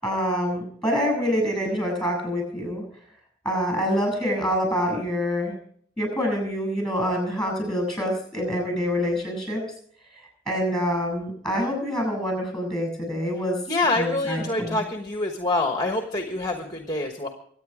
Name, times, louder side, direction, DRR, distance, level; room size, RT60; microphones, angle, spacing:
voice 1, 0.0-2.8 3.4-5.5 6.0-9.6 10.1-13.6 14.0-14.8, equal, 5° left, 2 dB, 7.3 m, -26 dB
voice 2, 13.7-17.3, left 2 dB, 20° left, 4 dB, 1.2 m, -26 dB
24.5 x 9.2 x 5.0 m, 0.62 s
head